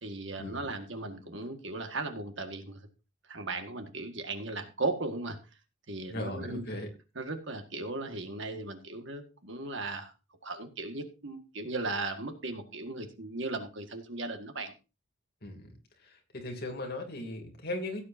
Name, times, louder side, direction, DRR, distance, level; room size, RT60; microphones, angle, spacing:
voice 1, 0.0-2.8 3.3-5.4 5.9-6.6 7.2-10.1 10.4-14.7, right 2 dB, 60° right, 6 dB, 1.8 m, -37 dB
voice 2, 6.1-6.9 15.4-15.7 16.0-18.1, left 1 dB, 45° left, 2 dB, 2.8 m, -38 dB
16.5 x 8.5 x 2.7 m, 0.30 s
head